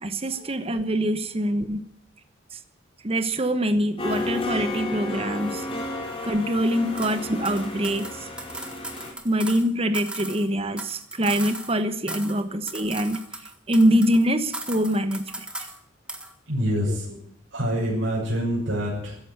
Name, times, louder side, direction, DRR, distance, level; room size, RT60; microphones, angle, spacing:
voice 1, 0.0-1.8 3.0-5.7 6.2-8.1 9.2-13.2 13.7-15.5 16.9-17.0, equal, 30° right, 10 dB, 1.1 m, -24 dB
sound 1, 4.0-9.1, left 2 dB, 30° left, 3.4 m, -32 dB
sound 2, 7.0-7.2 7.4-9.7 9.9-11.8 12.1-12.4 12.7-14.2 14.5-15.8 16.1-16.3, right 1 dB, 5° right, 1.6 m, -37 dB
voice 2, 16.5-17.2 17.5-19.2, equal, 75° right, -5 dB, 6.8 m, -26 dB
14.0 x 10.5 x 9.4 m, 0.68 s
head